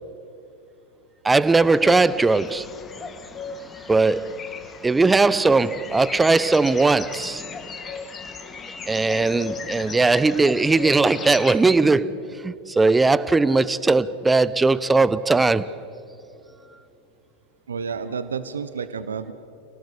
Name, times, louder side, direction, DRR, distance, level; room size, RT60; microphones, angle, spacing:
voice 1, 1.2-2.7 3.9-7.4 8.9-15.7, right 3 dB, 10° right, 0.8 m, -19 dB
sound 1, 1.6-11.6, left 5 dB, 25° left, 2.1 m, -37 dB
voice 2, 17.7-19.3, right 6 dB, 75° right, 1.0 m, -30 dB
29.0 x 18.0 x 8.4 m
figure-of-eight pair, 90°, 0 cm